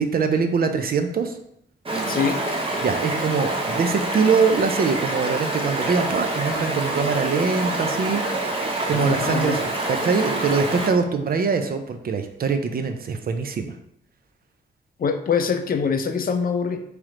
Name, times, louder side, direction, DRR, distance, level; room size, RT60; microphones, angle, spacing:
voice 1, 0.0-1.4 2.8-13.7, right 5 dB, 55° right, 7 dB, 0.5 m, -23 dB
Stream, 1.8-10.9, right 2 dB, 30° right, 0.8 m, -26 dB
voice 2, 2.1-2.4 8.9-9.6 15.0-16.8, left 6 dB, 50° left, 6 dB, 0.5 m, -24 dB
3.2 x 3.2 x 3.7 m, 0.74 s
cardioid pair, 75°, 19 cm